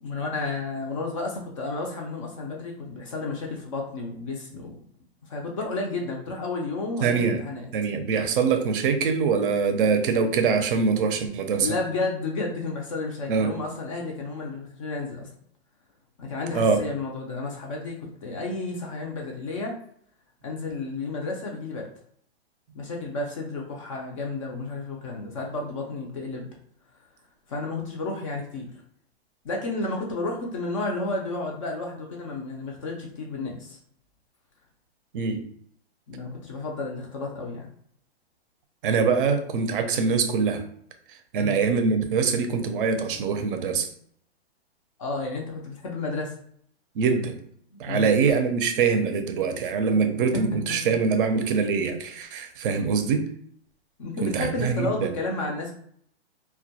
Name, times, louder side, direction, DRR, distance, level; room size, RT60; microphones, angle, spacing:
voice 1, 0.0-4.8 5.2-7.6 11.6-15.3 16.2-19.7 20.4-21.9 22.7-26.5 27.5-28.7 29.4-33.8 36.1-37.7 41.4-41.6 45.0-46.3 47.7-48.2 49.9-50.0 50.3-50.4 52.7-52.9 54.0-55.7, left 3 dB, 30° left, 0 dB, 0.4 m, -32 dB
voice 2, 7.0-7.4 7.7-11.7 13.3-13.5 16.5-16.8 35.1-35.4 38.8-40.6 41.3-43.9 47.0-47.4 47.8-53.3 54.2-55.1, right 5 dB, 55° right, 7 dB, 0.5 m, -23 dB
2.2 x 2.1 x 2.7 m, 0.64 s
hypercardioid pair, 140°, 32 cm